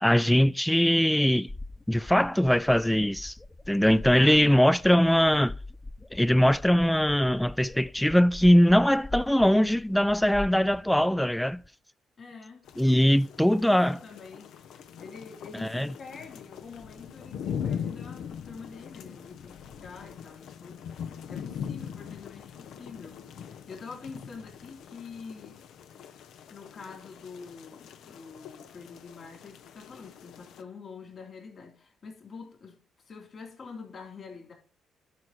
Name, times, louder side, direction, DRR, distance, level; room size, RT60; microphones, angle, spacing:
voice 1, 0.0-1.5 1.9-3.3 3.7-5.5 6.1-11.6 12.8-14.0 15.6-15.9, equal, 5° left, 0.4 m, -21 dB
sound 1, 1.5-11.7, left 2 dB, 25° left, 1.0 m, -43 dB
voice 2, 4.1-4.5 12.2-25.7 26.5-32.8 33.1-34.5, left 5 dB, 50° left, 3.6 m, -46 dB
sound 2, 12.7-30.6, left 8 dB, 70° left, 0.8 m, -41 dB
11.0 x 4.8 x 6.2 m
hypercardioid pair, 50°, 0 cm